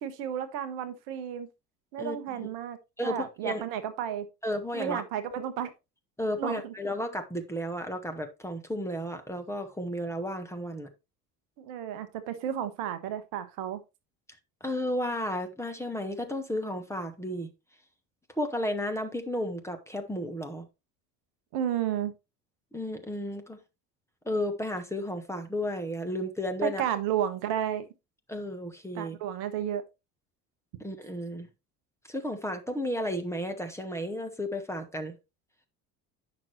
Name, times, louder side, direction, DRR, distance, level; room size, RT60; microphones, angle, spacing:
voice 1, 0.0-1.5 1.9-2.8 3.0-4.3 4.7-5.7 6.4-6.7 11.6-13.8 21.5-22.1 26.6-27.8 28.9-29.8, right 10 dB, 55° right, 1.0 m, -32 dB
voice 2, 2.0-2.5 3.0-3.6 4.4-5.0 6.2-10.9 14.6-17.5 18.3-20.7 22.7-23.6 24.2-26.8 28.3-29.2 30.8-31.5 32.1-35.2, equal, 5° left, 1.2 m, -33 dB
8.8 x 6.0 x 3.0 m
figure-of-eight pair, 65°, 47 cm